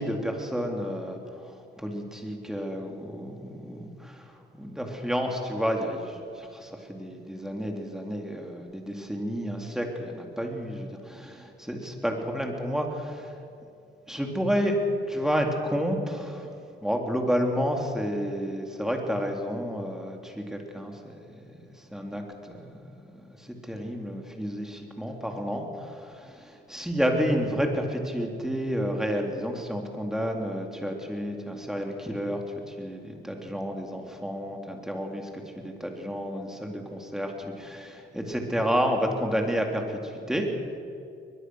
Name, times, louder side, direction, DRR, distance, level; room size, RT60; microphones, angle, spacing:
voice 1, 0.0-13.4 14.1-14.8 15.1-16.5 16.8-21.0 21.3-40.5, equal, ahead, 2 dB, 3.6 m, -31 dB
22.0 x 21.0 x 6.5 m, 2.6 s
cardioid pair, 90°, 20 cm